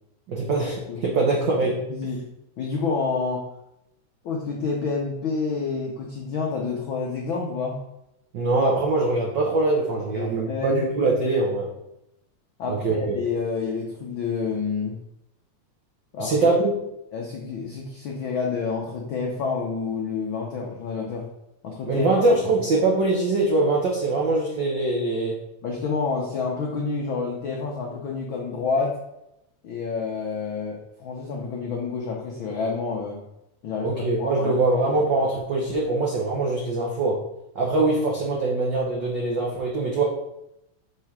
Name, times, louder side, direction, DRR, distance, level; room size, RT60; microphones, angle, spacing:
voice 1, 0.3-1.8 8.3-11.7 12.7-13.2 16.2-16.7 21.8-25.4 33.8-37.2 37.5-40.0, right 2 dB, 80° right, -3 dB, 1.0 m, -23 dB
voice 2, 1.9-2.2 2.6-3.4 4.2-7.8 10.1-10.8 12.6-15.0 16.1-16.5 17.1-21.3 21.6-22.1 25.6-29.0 29.6-33.2 33.6-33.9 34.2-34.6 35.0-35.1, left 4 dB, 80° left, -1 dB, 1.1 m, -28 dB
6.0 x 3.3 x 5.8 m, 0.84 s
omnidirectional pair, 3.3 m